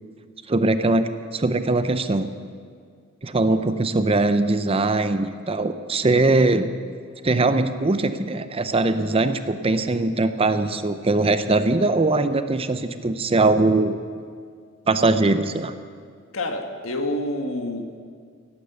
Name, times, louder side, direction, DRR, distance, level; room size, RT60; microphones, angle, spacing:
voice 1, 0.5-2.3 3.2-6.7 7.2-14.0 14.9-15.7, right 2 dB, 30° right, 11 dB, 0.6 m, -21 dB
voice 2, 16.3-18.0, left 1 dB, 85° left, 4 dB, 1.5 m, -28 dB
17.0 x 9.8 x 6.9 m, 2.1 s
head